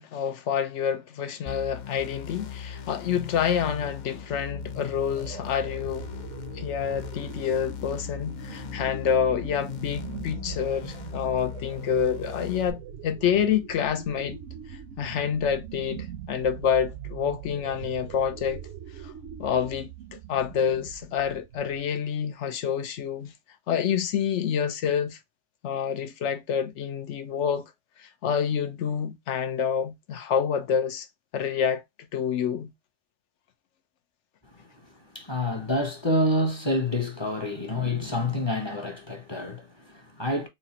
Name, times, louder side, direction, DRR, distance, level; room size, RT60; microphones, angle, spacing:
voice 1, 0.0-6.1 6.5-14.4 14.7-18.6 19.0-19.1 19.4-23.3 23.7-25.2 25.6-27.7 28.0-31.1 31.3-31.8 32.1-32.7, left 8 dB, 75° left, 1.0 m, -27 dB
sound 1, 1.5-12.7, left 7 dB, 55° left, 0.5 m, -39 dB
sound 2, 4.5-22.0, right 9 dB, 80° right, 0.9 m, -42 dB
voice 2, 35.1-40.5, left 1 dB, 25° left, 0.8 m, -28 dB
4.2 x 2.5 x 2.8 m
omnidirectional pair, 1.2 m